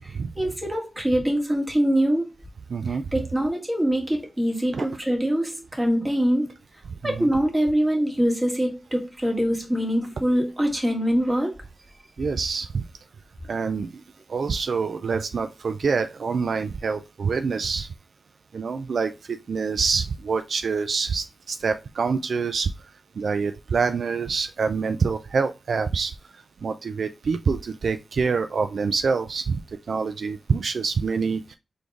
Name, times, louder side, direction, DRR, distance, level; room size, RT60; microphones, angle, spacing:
voice 1, 0.3-2.3 2.8-6.5 7.0-11.5, equal, 20° right, 1.6 m, -24 dB
voice 2, 2.7-3.0 4.7-4.9 7.0-7.3 12.2-12.8 13.5-13.9 14.3-17.9 18.5-22.7 23.2-26.1 26.6-29.6 29.9-31.5, right 5 dB, 75° right, 0.3 m, -26 dB
4.1 x 3.3 x 3.4 m
cardioid pair, 70°, 0 cm